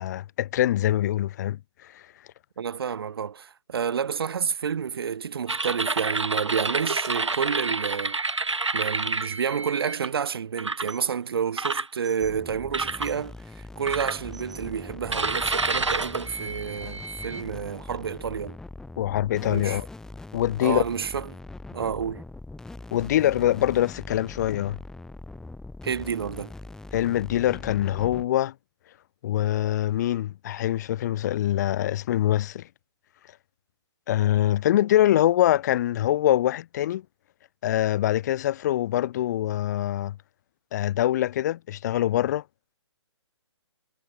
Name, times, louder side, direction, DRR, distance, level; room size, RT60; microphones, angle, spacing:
voice 1, 0.0-1.6 1.9-2.0 19.0-19.9 20.3-20.8 22.9-24.8 26.9-28.5 29.2-32.6 34.1-37.0 37.6-40.1 40.7-42.4, left 12 dB, 35° left, 1.7 m, -24 dB
voice 2, 2.6-8.2 8.7-18.6 19.4-19.8 20.6-21.3 21.7-22.2 25.8-26.5, right 7 dB, 55° right, 2.5 m, -29 dB
sound 1, 5.5-10.1 10.6-11.0 11.6-12.3 12.7-13.1 13.9-14.6 15.1-17.4, right 3 dB, 80° right, 1.1 m, -29 dB
sound 2, 12.2-28.3, left 2 dB, 5° left, 3.6 m, -42 dB
figure-of-eight pair, 135°, 15 cm